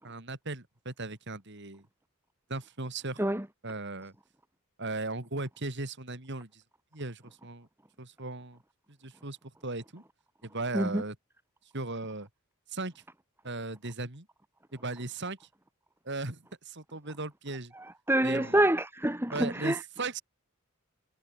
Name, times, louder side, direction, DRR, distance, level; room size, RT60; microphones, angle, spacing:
voice 1, 0.0-1.8 2.5-3.2 3.6-4.1 4.8-6.6 6.9-7.7 8.0-8.6 9.0-9.4 9.6-10.0 10.4-11.1 11.7-12.3 12.7-13.0 13.4-14.3 14.7-15.5 16.0-17.7 18.2-18.6 19.3-20.2, right 2 dB, 55° right, 3.3 m, -37 dB
voice 2, 17.8-19.8, right 1 dB, 10° right, 1.7 m, -27 dB
head